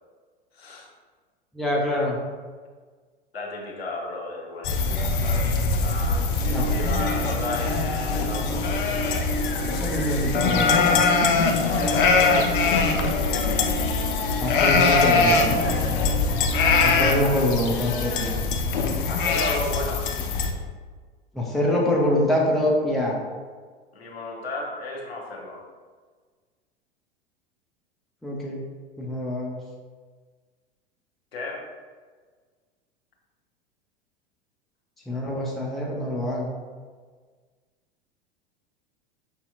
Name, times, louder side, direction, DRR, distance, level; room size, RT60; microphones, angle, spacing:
voice 1, 0.5-0.9 3.3-9.1 11.6-12.9 19.1-20.0 23.9-25.6 31.3-31.6, left 2 dB, 80° left, -2 dB, 0.9 m, -34 dB
voice 2, 1.5-2.2 6.5-6.7 9.6-10.9 14.4-15.9 16.8-18.3 21.3-23.2 28.2-28.6 29.0-29.6 35.1-36.5, left 1 dB, ahead, -3 dB, 0.5 m, -25 dB
sound 1, 4.6-20.5, left 4 dB, 55° left, 0.5 m, -22 dB
sound 2, 6.4-17.3, right 2 dB, 80° right, 0.8 m, -34 dB
5.1 x 2.8 x 2.3 m, 1.5 s
figure-of-eight pair, 85°, 31 cm